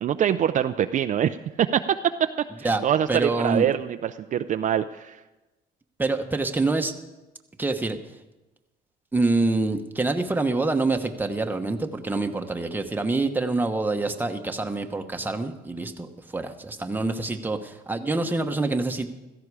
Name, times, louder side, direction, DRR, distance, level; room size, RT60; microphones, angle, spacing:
voice 1, 0.0-5.2, right 9 dB, 50° right, 8 dB, 0.5 m, -24 dB
voice 2, 3.1-3.7 6.0-6.9 7.6-8.0 9.1-16.1 16.3-19.1, right 3 dB, 10° right, 5 dB, 1.1 m, -26 dB
16.0 x 14.0 x 4.8 m, 1.1 s
cardioid pair, 110°, 17 cm